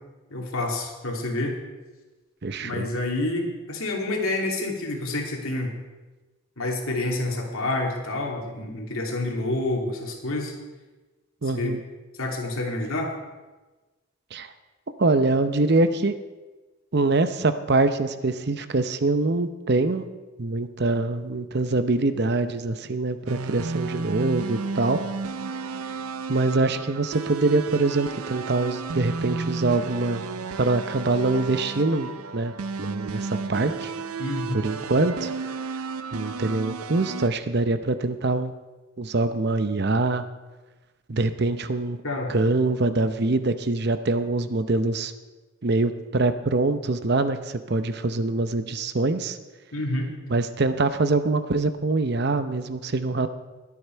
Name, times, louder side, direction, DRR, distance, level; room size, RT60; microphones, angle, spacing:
voice 1, 0.3-1.6 2.6-5.7 6.6-10.5 11.5-11.7 12.2-13.1 34.2-34.6 42.0-42.3 49.7-50.1, left 2 dB, 80° left, 0 dB, 2.7 m, -28 dB
voice 2, 2.4-2.9 11.4-11.8 14.3-14.5 15.0-16.2 16.9-20.0 20.4-25.0 26.3-30.2 30.6-33.9 34.5-35.3 36.1-38.5 39.0-40.2 41.1-42.0 42.3-45.1 45.6-49.4 50.3-53.3, right 3 dB, 50° right, 11 dB, 0.7 m, -24 dB
sound 1, 23.3-37.3, right 4 dB, 90° right, 0.6 m, -33 dB
21.5 x 8.6 x 4.6 m, 1.2 s
head